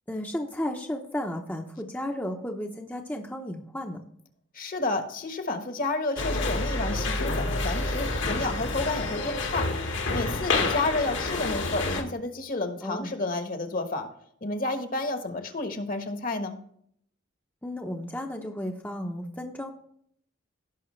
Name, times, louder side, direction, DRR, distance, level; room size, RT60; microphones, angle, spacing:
voice 1, 0.1-4.0 12.8-13.1 17.6-19.7, left 1 dB, 10° left, 1 dB, 0.8 m, -33 dB
voice 2, 4.5-14.1 14.4-16.6, left 2 dB, 45° left, 7 dB, 1.3 m, -31 dB
sound 1, 6.2-12.0, left 2 dB, 65° left, 1.7 m, -28 dB
17.0 x 5.8 x 3.2 m, 0.66 s
head